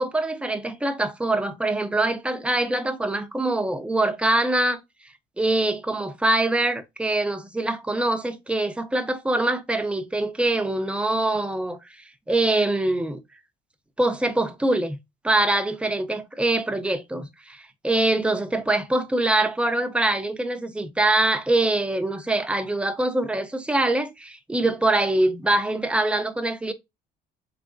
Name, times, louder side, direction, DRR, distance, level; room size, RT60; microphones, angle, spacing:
voice 1, 0.0-4.8 5.4-11.8 12.3-13.2 14.0-15.0 15.2-26.7, right 2 dB, 5° right, 0.6 m, -24 dB
4.0 x 3.5 x 2.5 m
cardioid pair, 110°, 17 cm